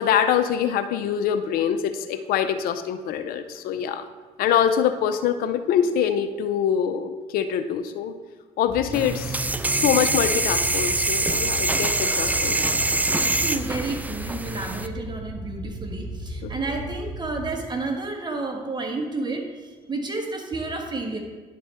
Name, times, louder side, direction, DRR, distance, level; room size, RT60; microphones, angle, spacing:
voice 1, 0.0-4.1 4.4-8.1 8.6-9.4 9.7-12.6 16.4-16.5, left 9 dB, 70° left, 10 dB, 0.5 m, -24 dB
sound 1, 8.7-17.5, right 1 dB, 10° left, 1.6 m, -36 dB
sound 2, 8.9-14.9, right 2 dB, 10° right, 0.4 m, -24 dB
voice 2, 13.2-21.2, right 3 dB, 30° right, 2 dB, 1.4 m, -31 dB
11.0 x 4.2 x 3.4 m, 1.4 s
supercardioid pair, 70°, 16 cm